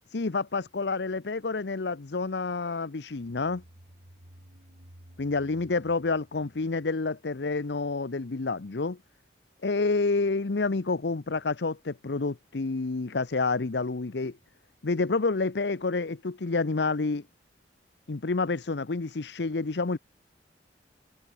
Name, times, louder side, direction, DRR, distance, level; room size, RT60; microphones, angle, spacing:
voice 1, 0.1-3.6 5.2-9.0 9.6-14.4 14.8-17.2 18.1-20.0, left 3 dB, 75° left, 0.8 m, -29 dB
sound 1, 3.1-7.6, equal, 75° right, 3.7 m, -55 dB
head